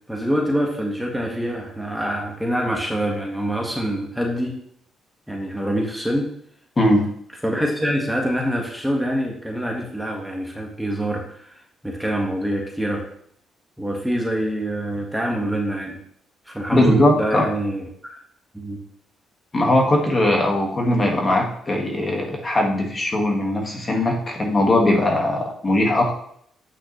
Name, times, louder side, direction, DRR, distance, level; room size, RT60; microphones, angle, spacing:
voice 1, 0.1-4.5 5.3-6.3 7.4-13.0 13.8-16.0 16.5-18.1 18.5-18.8, right 1 dB, 5° right, 0 dB, 1.6 m, -25 dB
voice 2, 6.8-7.1 16.7-17.4 19.5-26.1, left 1 dB, 30° left, 1 dB, 1.7 m, -19 dB
8.7 x 5.8 x 3.2 m, 0.66 s
cardioid pair, 90°, 0 cm